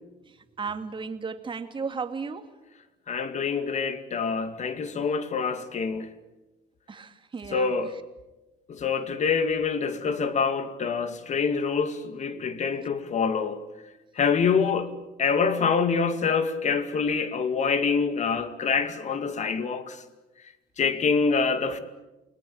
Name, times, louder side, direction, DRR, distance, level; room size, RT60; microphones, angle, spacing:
voice 1, 0.2-2.5 6.9-7.7 12.3-12.7 14.6-14.8, right 5 dB, 30° right, 2.3 m, -35 dB
voice 2, 3.1-6.1 7.5-7.9 8.7-13.6 14.2-14.9 15.2-20.0 20.8-21.8, left 5 dB, 45° left, 2.4 m, -26 dB
29.0 x 20.5 x 8.7 m
cardioid pair, 110°, 17 cm